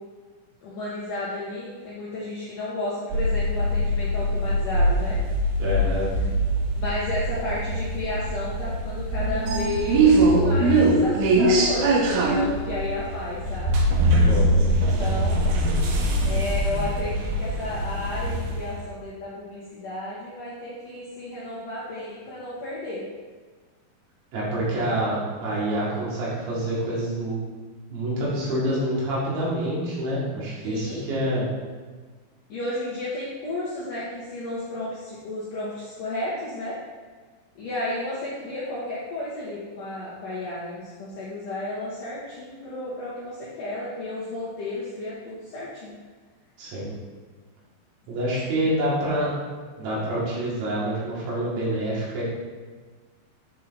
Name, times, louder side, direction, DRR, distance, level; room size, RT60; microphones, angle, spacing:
voice 1, 0.6-5.2 6.7-13.7 14.7-15.5 16.2-23.0 30.6-31.1 32.5-36.8 37.6-45.9, left 2 dB, 70° left, -8 dB, 2.0 m, -32 dB
sound 1, 3.1-18.8, right 1 dB, 90° right, 2.1 m, -22 dB
voice 2, 5.6-6.1 14.2-14.6 24.3-27.4 27.9-31.5 46.6-46.9 48.1-49.3 49.8-52.2, right 1 dB, 70° right, -7 dB, 4.4 m, -27 dB
9.2 x 4.4 x 4.1 m, 1.4 s
omnidirectional pair, 5.4 m